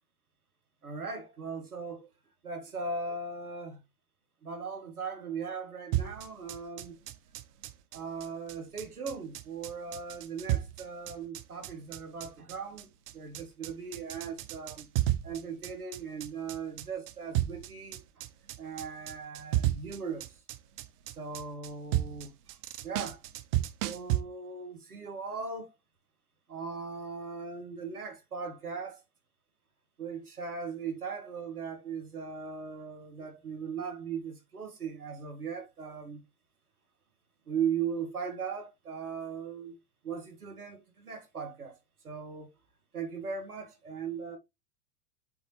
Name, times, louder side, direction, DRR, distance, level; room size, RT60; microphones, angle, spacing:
voice 1, 0.8-2.1 2.4-3.8 4.4-7.0 7.9-12.9 13.1-14.9 15.2-18.2 18.6-20.4 21.2-22.6 22.8-23.2 23.8-25.7 26.5-29.0 30.0-36.2 37.5-39.8 40.0-41.8 42.0-42.5 42.9-44.4, right 5 dB, 85° right, 2.0 m, -38 dB
sound 1, 5.9-24.2, right 14 dB, 45° right, 0.8 m, -33 dB
8.0 x 4.0 x 3.3 m
figure-of-eight pair, 95°, 43 cm